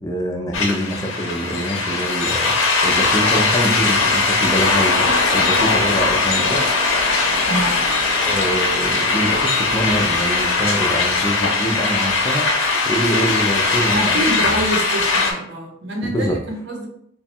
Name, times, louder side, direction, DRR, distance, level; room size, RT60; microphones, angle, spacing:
voice 1, 0.0-2.6 2.8-6.6 8.2-12.5 12.9-14.6 16.0-16.4, equal, 15° left, 1 dB, 0.5 m, -24 dB
sound 1, 0.5-15.3, left 3 dB, 65° left, 0.8 m, -19 dB
voice 2, 7.5-7.8 13.9-16.9, right 1 dB, 55° right, 0 dB, 0.8 m, -26 dB
3.0 x 2.3 x 4.3 m, 0.71 s
head